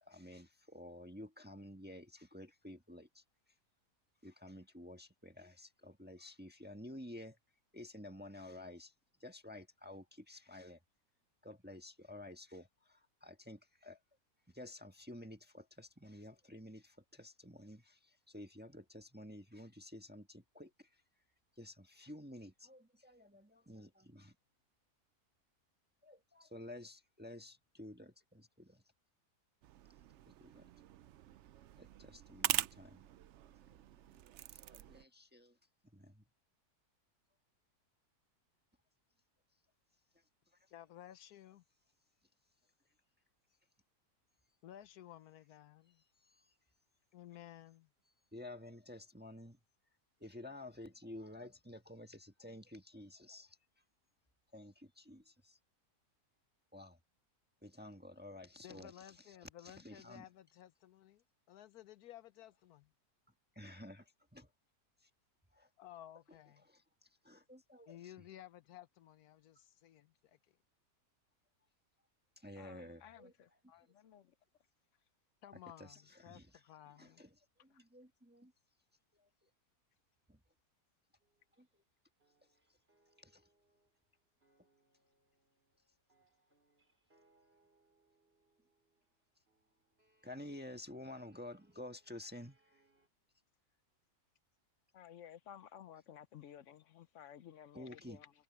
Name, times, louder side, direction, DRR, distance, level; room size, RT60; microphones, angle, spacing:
voice 1, 0.0-3.2 4.2-7.4 7.7-8.9 9.2-10.8 11.4-14.0 14.5-21.0 21.6-24.3 26.0-28.8 30.3-30.7 31.8-33.1 33.4-35.6 35.9-36.2 46.2-46.3 48.3-49.6 50.2-53.6 54.5-55.6 56.7-57.0 57.6-59.4 59.6-60.3 63.5-64.5 65.0-65.1 65.5-65.7 66.6-68.1 72.4-73.6 75.8-76.6 77.0-77.3 77.6-78.5 79.1-79.5 80.3-80.4 81.6-81.8 83.2-83.5 90.2-92.8 97.7-98.2, left 1 dB, 5° right, 1.4 m, -52 dB
sound 1, 29.6-35.1, right 13 dB, 70° right, 0.7 m, -43 dB
voice 2, 40.7-41.6 44.6-46.0 47.1-47.9 58.6-62.9 65.8-66.7 67.9-70.6 75.4-77.2, left 12 dB, 80° left, 1.3 m, -56 dB
voice 3, 72.6-74.3 94.9-98.3, left 10 dB, 60° left, 0.9 m, -55 dB
sound 2, 81.2-81.9 82.2-93.1, right 2 dB, 40° right, 6.4 m, -76 dB
omnidirectional pair, 1.6 m